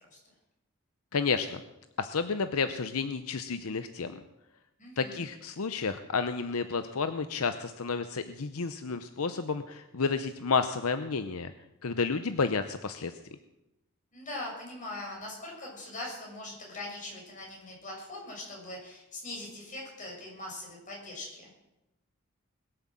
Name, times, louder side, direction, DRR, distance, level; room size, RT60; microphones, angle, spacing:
voice 1, 1.1-1.6 2.0-4.2 5.0-11.5 11.8-13.1, left 5 dB, 75° left, 10 dB, 0.7 m, -31 dB
voice 2, 4.8-5.2 14.1-21.5, left 2 dB, 35° left, -2 dB, 6.5 m, -41 dB
21.0 x 8.1 x 7.5 m, 0.92 s
head